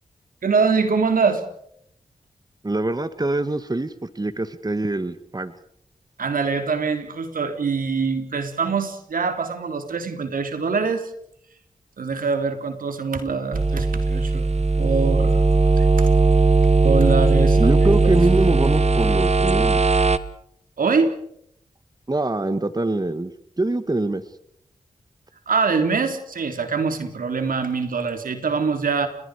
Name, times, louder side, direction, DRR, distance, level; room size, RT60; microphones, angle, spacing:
voice 1, 0.4-1.4 6.2-11.1 12.0-14.5 14.8-16.1 16.8-17.6 18.0-18.1 20.8-21.1 25.5-29.1, right 5 dB, 75° right, 7 dB, 3.4 m, -24 dB
voice 2, 2.6-5.5 17.6-19.8 22.1-23.3 23.6-24.2, right 2 dB, 25° right, 12 dB, 1.7 m, -24 dB
sound 1, 13.5-20.2, right 3 dB, 50° right, 1.4 m, -18 dB
30.0 x 22.5 x 4.9 m, 0.69 s
cardioid pair, 45°, 14 cm